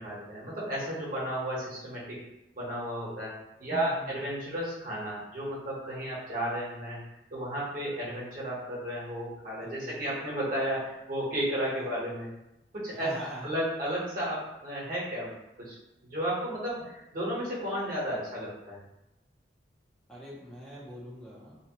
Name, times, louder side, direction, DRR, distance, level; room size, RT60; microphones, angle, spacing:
voice 1, 0.0-2.3 2.6-3.3 3.6-7.0 7.3-12.3 12.7-13.1 13.4-15.3 15.6-15.8 16.1-18.8, equal, 50° right, -7 dB, 1.0 m, -33 dB
voice 2, 3.7-4.3 9.6-10.4 11.8-11.9 12.9-13.5 20.1-21.6, equal, 5° left, -7 dB, 0.5 m, -44 dB
2.9 x 2.0 x 2.9 m, 0.93 s
head